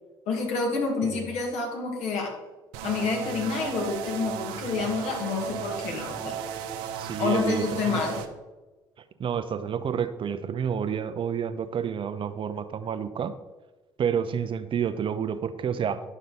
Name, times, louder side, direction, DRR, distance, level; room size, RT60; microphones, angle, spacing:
voice 1, 0.3-2.4 2.8-6.4 7.2-8.2, left 4 dB, 65° left, 0 dB, 2.4 m, -28 dB
sound 1, 2.7-8.3, right 8 dB, 75° right, 0.9 m, -35 dB
voice 2, 6.9-8.0 9.2-13.3 14.0-16.0, right 7 dB, 45° right, 10 dB, 0.8 m, -29 dB
10.5 x 6.6 x 4.3 m, 1.1 s
hypercardioid pair, 60°, 12 cm